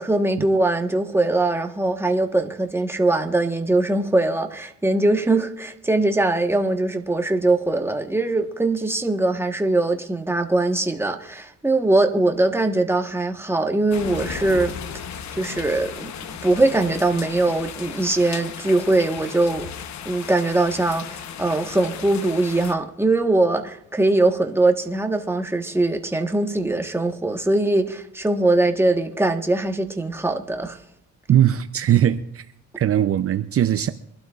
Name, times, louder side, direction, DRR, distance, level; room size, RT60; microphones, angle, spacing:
voice 1, 0.0-14.7 15.4-16.1 16.4-19.7 20.0-30.8, right 2 dB, 10° right, 1.3 m, -21 dB
sound 1, 13.9-22.7, left 7 dB, 65° left, 1.1 m, -35 dB
voice 2, 31.3-32.4 32.8-33.9, right 10 dB, 50° right, 0.6 m, -19 dB
24.5 x 12.0 x 2.5 m
cardioid pair, 90°, 30 cm